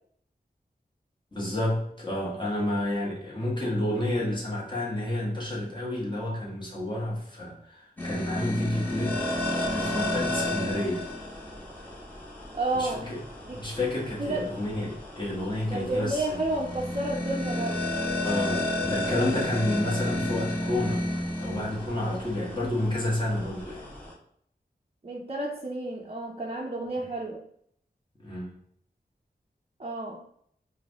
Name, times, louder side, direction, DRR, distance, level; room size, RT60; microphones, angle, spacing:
voice 1, 1.3-11.0 12.7-13.2 13.5-16.4 18.2-21.1 21.4-23.9 28.2-28.6, left 1 dB, 25° left, -5 dB, 1.7 m, -30 dB
sound 1, 8.0-24.1, left 1 dB, 10° left, 1.3 m, -32 dB
voice 2, 12.5-13.1 13.4-13.6 14.2-14.5 15.7-17.8 25.0-27.4 29.8-30.2, right 2 dB, 35° right, -1 dB, 0.5 m, -31 dB
4.7 x 2.6 x 3.5 m, 0.68 s
wide cardioid pair, 70°, 17 cm